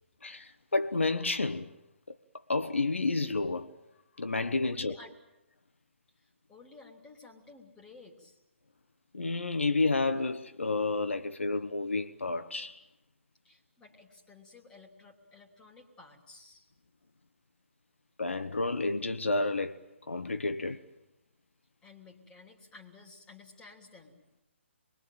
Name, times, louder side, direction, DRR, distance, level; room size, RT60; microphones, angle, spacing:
voice 1, 0.2-1.7 2.1-2.2 2.5-3.7 4.2-5.0 9.1-12.8 18.2-19.8 20.1-20.8, left 3 dB, 70° left, 1.1 m, -30 dB
voice 2, 4.6-5.1 6.1-8.4 13.4-16.7 21.8-24.2, left 3 dB, 10° left, 3.3 m, -54 dB
28.0 x 22.5 x 9.2 m
figure-of-eight pair, 135°, 7 cm